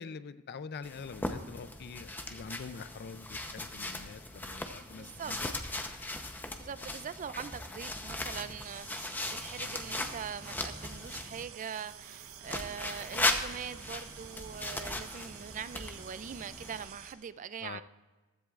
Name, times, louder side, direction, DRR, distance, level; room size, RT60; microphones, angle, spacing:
voice 1, 0.0-5.5 9.6-9.7 17.6-17.8, left 5 dB, 45° left, 0.4 m, -45 dB
sound 1, 0.8-11.4 12.4-16.9, left 1 dB, 10° left, 0.7 m, -38 dB
voice 2, 4.9-5.3 6.6-17.8, right 7 dB, 35° right, 0.3 m, -42 dB
sound 2, 8.6-17.1, right 8 dB, 65° right, 0.9 m, -50 dB
15.0 x 13.5 x 2.4 m
head